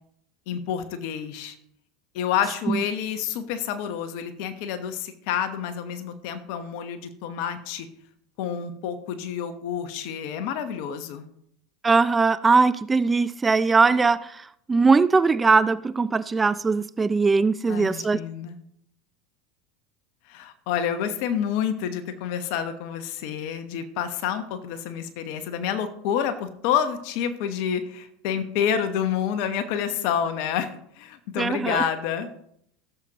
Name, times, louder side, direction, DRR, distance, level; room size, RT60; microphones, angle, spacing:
voice 1, 0.5-1.6 2.1-7.9 8.4-11.3 17.7-18.6 20.3-30.7 31.0-32.3, left 8 dB, 65° left, 1.1 m, -28 dB
voice 2, 11.8-14.4 14.7-18.2 31.4-31.8, right 4 dB, 20° right, 0.5 m, -20 dB
16.5 x 7.6 x 3.0 m
hypercardioid pair, 90°, 0 cm